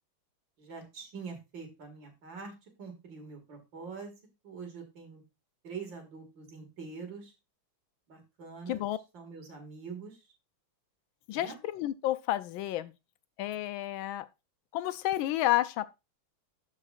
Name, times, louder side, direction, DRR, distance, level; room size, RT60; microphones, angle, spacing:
voice 1, 0.6-2.5 2.8-4.1 4.4-5.2 5.6-7.3 8.1-8.8 9.1-10.2 11.3-11.6, right 5 dB, 65° right, 2.7 m, -44 dB
voice 2, 11.3-12.9 13.4-14.3 14.7-15.8, left 14 dB, 80° left, 1.4 m, -30 dB
12.5 x 4.9 x 2.4 m
omnidirectional pair, 2.2 m